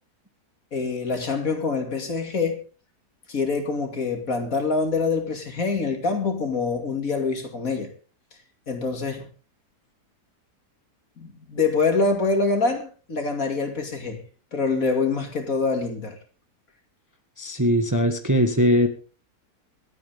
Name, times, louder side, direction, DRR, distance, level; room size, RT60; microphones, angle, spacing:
voice 1, 0.7-2.6 3.3-7.9 8.7-9.3 11.2-14.2 14.5-16.2, left 4 dB, 55° left, 2.9 m, -25 dB
voice 2, 17.4-18.9, equal, 10° right, 1.3 m, -20 dB
25.5 x 9.0 x 3.5 m
omnidirectional pair, 1.7 m